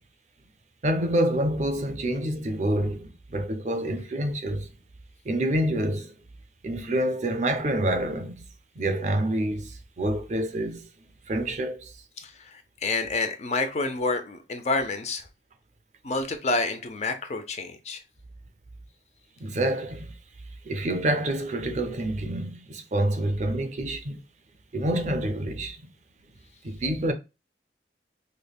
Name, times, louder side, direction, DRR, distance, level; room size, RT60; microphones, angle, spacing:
voice 1, 0.8-4.7 5.3-6.1 6.6-8.4 8.8-10.8 11.3-11.9 19.4-20.1 20.6-24.2 24.7-25.8 26.6-27.1, right 1 dB, 40° right, 0.5 m, -27 dB
voice 2, 12.2-15.3 16.0-18.0, left 3 dB, 40° left, 0.5 m, -29 dB
5.1 x 2.1 x 2.3 m
head